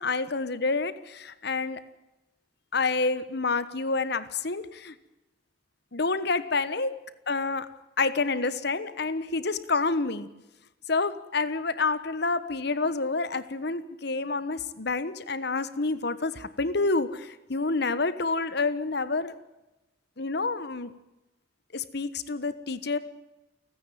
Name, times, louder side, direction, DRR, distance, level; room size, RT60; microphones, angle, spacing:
voice 1, 0.0-1.8 2.7-4.9 5.9-6.9 7.3-7.6 8.0-10.3 10.9-19.3 20.2-20.9 21.7-23.0, left 3 dB, 60° left, 13 dB, 1.2 m, -28 dB
29.5 x 9.9 x 9.3 m, 1.0 s
head